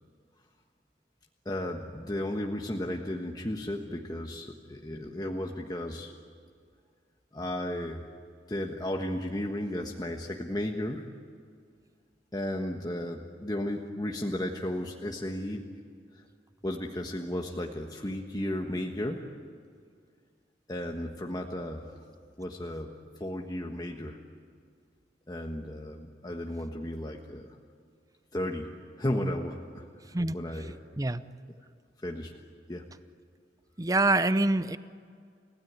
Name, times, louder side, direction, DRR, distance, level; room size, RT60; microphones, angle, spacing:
voice 1, 1.4-6.1 7.3-8.0 8.5-11.1 12.3-15.8 16.1-16.2 16.6-19.3 20.7-21.9 22.4-22.9 23.2-24.2 25.3-27.5 28.3-28.7 29.0-29.8 30.3-30.7 32.0-32.3 32.7-32.9, left 1 dB, 20° left, 2 dB, 1.3 m, -34 dB
voice 2, 33.8-34.8, right 2 dB, 20° right, 13 dB, 0.7 m, -25 dB
30.0 x 17.0 x 9.5 m, 2.1 s
head